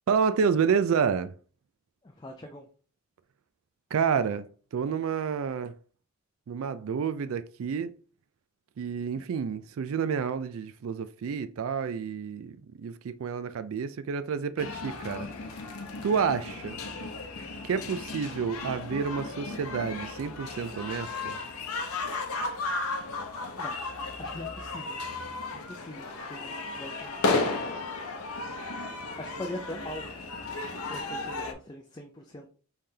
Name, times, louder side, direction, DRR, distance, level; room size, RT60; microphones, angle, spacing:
voice 1, 0.1-1.3 3.9-5.7 6.5-7.9 8.8-15.3 16.0-16.8 17.6-21.4, right 6 dB, 75° right, 0.4 m, -29 dB
voice 2, 2.0-2.7 23.6-23.7 24.2-25.0 25.5-27.6 29.2-30.1 30.9-32.5, left 1 dB, 20° left, 0.4 m, -42 dB
sound 1, 14.6-31.5, left 3 dB, 90° left, 0.8 m, -34 dB
5.6 x 3.3 x 2.8 m
head